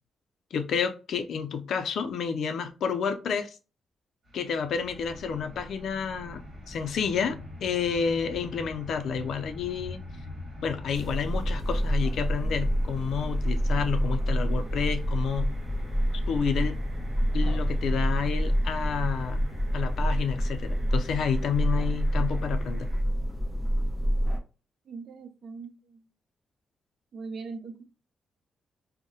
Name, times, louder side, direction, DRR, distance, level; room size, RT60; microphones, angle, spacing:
voice 1, 0.5-3.6 4.3-10.0 10.6-15.5 16.3-16.8 17.3-19.5 19.7-22.9, left 6 dB, 75° left, 0.4 m, -30 dB
sound 1, 4.2-23.0, left 2 dB, 50° right, 1.4 m, -44 dB
sound 2, 4.7-12.9, equal, 30° right, 1.3 m, -49 dB
sound 3, 10.9-24.4, equal, 5° left, 0.7 m, -27 dB
voice 2, 24.9-26.1 27.1-27.8, right 4 dB, 65° right, 0.5 m, -40 dB
2.6 x 2.1 x 2.7 m
cardioid pair, 85°, 0 cm